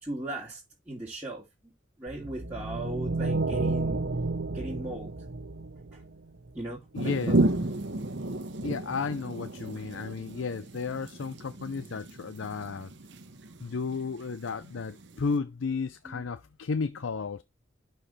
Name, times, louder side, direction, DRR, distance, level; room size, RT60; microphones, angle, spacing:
voice 1, 0.0-1.4 2.0-4.0 4.5-5.1 5.9-6.0 6.5-7.5 16.0-16.2, right 1 dB, 10° right, 2.5 m, -37 dB
sound 1, 2.1-6.5, right 3 dB, 85° right, 0.9 m, -31 dB
voice 2, 6.9-7.4 8.6-12.9 13.6-17.4, left 4 dB, 85° left, 0.6 m, -33 dB
sound 2, 6.9-15.4, right 2 dB, 65° right, 1.1 m, -33 dB
11.5 x 4.5 x 3.2 m
head